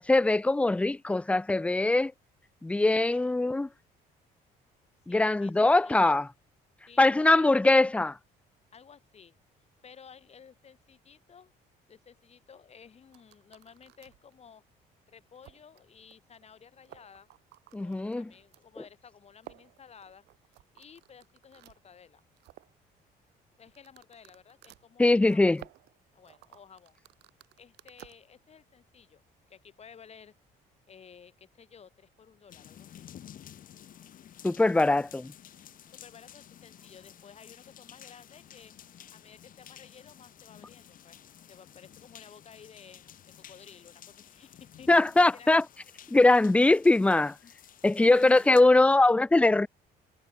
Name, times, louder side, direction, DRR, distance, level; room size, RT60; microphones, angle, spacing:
voice 1, 0.0-2.1 2.6-3.7 5.1-6.3 7.0-8.2 17.7-18.3 25.0-25.6 34.4-35.3 44.9-45.6 46.1-47.3 47.8-49.7, left 2 dB, 5° left, 0.5 m, -22 dB
voice 2, 2.7-3.3 5.1-6.2 6.9-7.5 8.7-9.3 9.8-11.5 11.9-14.6 15.1-17.3 17.8-20.3 20.7-22.2 23.6-25.6 26.1-27.0 27.6-29.2 29.5-30.4 30.9-33.1 35.9-41.2 41.5-44.9 45.3-45.5 47.2-47.5 48.1-48.9, left 7 dB, 40° left, 7.6 m, -54 dB
sound 1, 13.1-14.3 14.8-14.9 15.4-15.8 16.1-16.2 16.4-16.5 16.8-18.6 19.4-21.8 22.2-22.8 23.7-28.2, right 17 dB, 80° right, 3.1 m, -54 dB
sound 2, 32.5-48.6, left 10 dB, 55° left, 2.5 m, -52 dB
cardioid pair, 110°, 17 cm